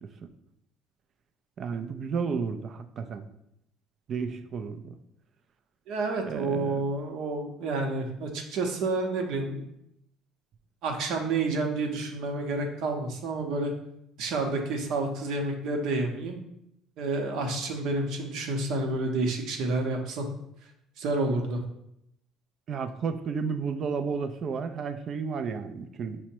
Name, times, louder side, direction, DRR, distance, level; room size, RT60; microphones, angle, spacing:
voice 1, 1.6-3.2 4.1-4.9 6.3-6.8 22.7-26.2, right 5 dB, 40° right, 9 dB, 0.3 m, -32 dB
voice 2, 5.9-9.7 10.8-13.7 14.2-16.4 17.0-20.3 21.0-21.6, right 2 dB, 65° right, 3 dB, 0.7 m, -29 dB
5.7 x 2.1 x 4.4 m, 0.79 s
cardioid pair, 145°, 0 cm